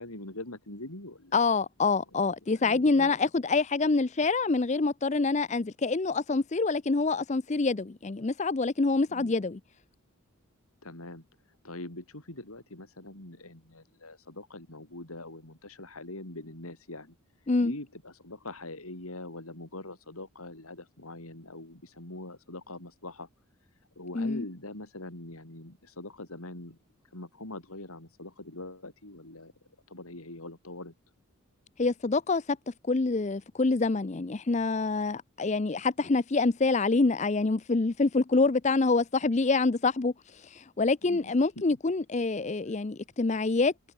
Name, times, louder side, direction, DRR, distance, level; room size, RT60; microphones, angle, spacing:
voice 1, 0.0-1.3 2.5-3.1 9.1-9.3 10.8-11.3 11.6-17.2 17.6-23.3 24.0-26.8 27.1-29.5 29.9-30.9 41.0-41.6, left 2 dB, 80° left, 4.8 m, -43 dB
voice 2, 1.3-9.6 17.5-17.7 24.2-24.4 31.8-43.7, left 3 dB, 30° left, 0.5 m, -26 dB
head